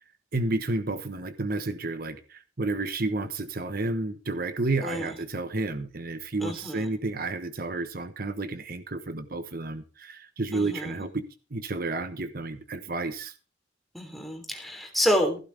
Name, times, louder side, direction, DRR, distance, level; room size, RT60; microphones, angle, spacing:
voice 1, 0.3-11.2 11.5-13.3, right 2 dB, 50° right, 1.2 m, -31 dB
voice 2, 4.8-5.1 6.4-6.9 10.5-10.9 13.9-15.4, equal, ahead, 3.4 m, -28 dB
16.0 x 12.5 x 3.5 m
head